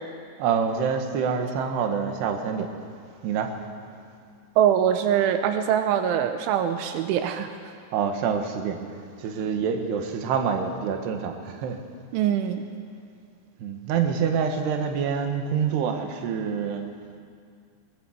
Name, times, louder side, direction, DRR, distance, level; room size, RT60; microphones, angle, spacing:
voice 1, 0.4-2.7 3.2-3.5 7.9-8.8 9.2-11.8 13.6-16.9, right 6 dB, 70° right, 4 dB, 3.5 m, -26 dB
voice 2, 4.6-7.5 12.1-12.6, right 9 dB, 85° right, 7 dB, 3.3 m, -23 dB
21.5 x 19.5 x 7.9 m, 2.2 s
omnidirectional pair, 5.4 m